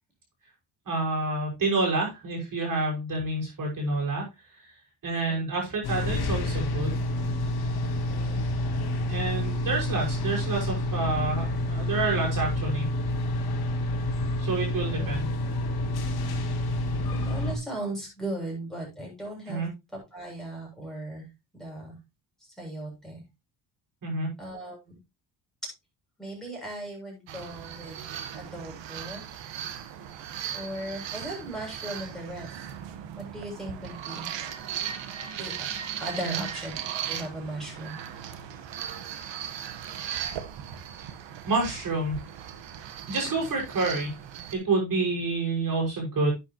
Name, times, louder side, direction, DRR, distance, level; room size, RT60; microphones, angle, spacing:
voice 1, 0.9-4.3 5.0-7.0 9.1-12.9 14.4-15.3 19.5-19.7 24.0-24.3 36.2-36.4 41.5-42.2 43.1-44.1 44.5-46.3, right 3 dB, 50° right, -1 dB, 6.2 m, -28 dB
sound 1, 5.8-17.6, left 1 dB, 60° left, 2.5 m, -28 dB
voice 2, 8.1-8.5 14.9-15.2 17.1-19.7 20.1-21.2 21.5-22.0 22.6-23.2 24.4-25.0 26.2-28.1 28.3-29.2 30.5-32.7 33.2-34.3 35.4-35.5 36.0-38.0, right 1 dB, ahead, -3 dB, 7.3 m, -37 dB
sound 2, 27.3-44.5, right 9 dB, 85° right, 1.5 m, -37 dB
11.5 x 8.7 x 3.1 m, 0.24 s
cardioid pair, 125°, 43 cm